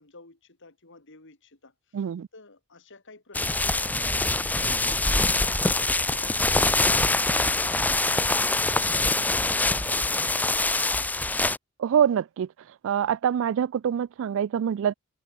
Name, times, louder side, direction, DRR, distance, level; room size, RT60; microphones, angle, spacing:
voice 1, 0.0-2.0 2.3-10.8, left 3 dB, 60° left, 3.6 m, -51 dB
voice 2, 1.9-2.3 11.8-12.5 12.8-14.9, right 8 dB, 60° right, 0.3 m, -25 dB
sound 1, 3.3-11.6, left 2 dB, 10° left, 0.5 m, -24 dB
head